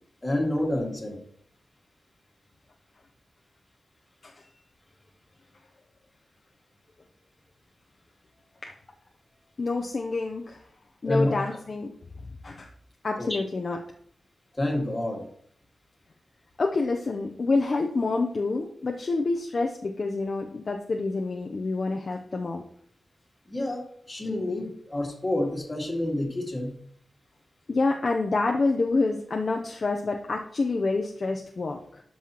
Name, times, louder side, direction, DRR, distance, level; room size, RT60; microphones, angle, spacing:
voice 1, 0.2-1.2 11.1-11.3 13.2-13.4 14.5-15.3 23.5-26.7, left 1 dB, 20° left, 0 dB, 1.9 m, -28 dB
voice 2, 9.6-10.6 11.0-11.9 12.4-12.7 13.0-13.8 16.6-22.6 27.7-32.0, left 3 dB, 45° left, 2 dB, 0.6 m, -27 dB
12.0 x 5.5 x 2.9 m, 0.65 s
wide cardioid pair, 155°, 0 cm